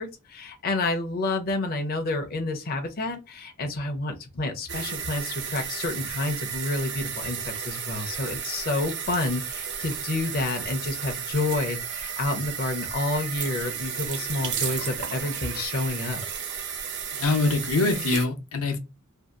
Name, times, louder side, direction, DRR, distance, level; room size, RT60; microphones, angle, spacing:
voice 1, 0.0-16.2, left 2 dB, 45° left, 0.5 m, -29 dB
sound 1, 4.7-18.3, right 7 dB, 55° right, 0.6 m, -33 dB
voice 2, 17.1-18.8, left 3 dB, 85° left, 0.7 m, -24 dB
2.6 x 2.3 x 2.3 m
head